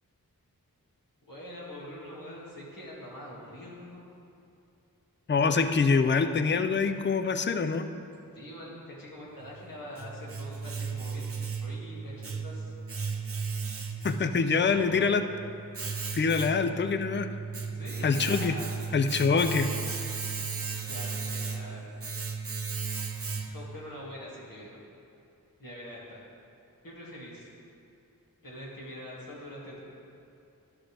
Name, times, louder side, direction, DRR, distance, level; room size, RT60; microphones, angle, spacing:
voice 1, 1.2-4.1 8.3-12.7 14.2-15.1 17.7-18.7 19.2-19.9 20.9-21.8 23.4-24.8 25.6-26.2 26.8-27.5 28.4-29.8, equal, 70° left, -6 dB, 2.2 m, -44 dB
voice 2, 5.3-7.9 14.0-15.2 16.1-17.3 18.0-18.6 18.9-19.7, left 5 dB, 35° left, 9 dB, 0.4 m, -25 dB
Domestic sounds home sounds, 9.4-23.8, right 5 dB, 40° right, 0.6 m, -35 dB
12.5 x 6.1 x 3.3 m, 2.7 s
wide cardioid pair, 55°, 35 cm